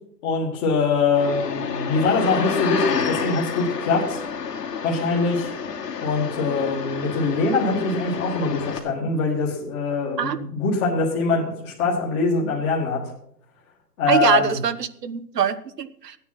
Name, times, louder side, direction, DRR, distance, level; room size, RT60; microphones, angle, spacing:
voice 1, 0.2-4.2 4.8-5.5 6.0-13.0 14.0-14.6, left 4 dB, 20° left, -4 dB, 1.8 m, -23 dB
sound 1, 1.1-8.8, left 6 dB, 70° left, 2.7 m, -29 dB
voice 2, 14.1-16.2, right 8 dB, 70° right, 12 dB, 1.2 m, -23 dB
14.5 x 9.6 x 5.8 m, 0.69 s
hypercardioid pair, 165°, 49 cm